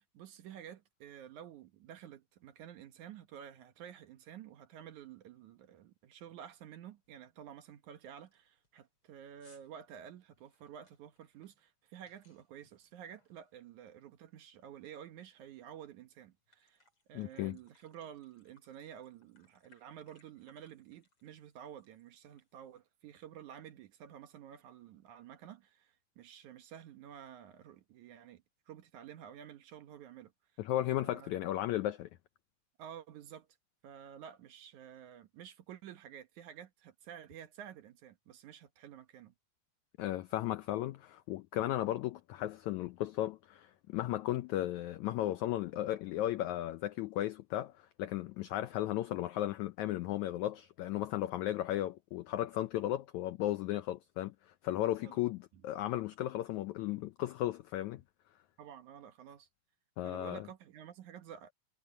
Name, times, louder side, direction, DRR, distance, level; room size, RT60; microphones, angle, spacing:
voice 1, 0.0-16.8 17.1-30.3 31.0-31.3 32.8-33.5 33.8-39.3 55.0-55.2 55.5-55.6 58.6-59.5 60.0-61.5, right 9 dB, 65° right, 2.3 m, -51 dB
sound 1, 4.7-4.8 5.2-5.5 5.8-5.9 6.3-6.6 7.0-7.1 7.7-7.8 8.1-14.0 14.3-15.6 16.0-16.1 16.3-22.8, left 3 dB, 35° left, 6.8 m, -72 dB
voice 2, 17.1-17.6 30.6-32.1 40.0-58.0 60.0-60.4, left 14 dB, 85° left, 1.7 m, -35 dB
omnidirectional pair, 4.1 m